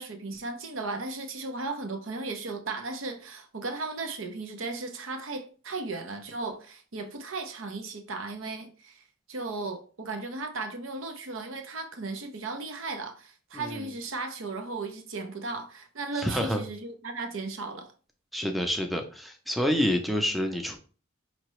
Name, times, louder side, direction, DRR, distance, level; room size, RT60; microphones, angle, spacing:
voice 1, 0.0-9.0 9.3-17.9, right 3 dB, 80° right, 0.7 m, -36 dB
voice 2, 13.5-13.9 16.2-16.6 18.3-20.8, equal, ahead, 0.4 m, -28 dB
5.4 x 2.9 x 3.0 m
head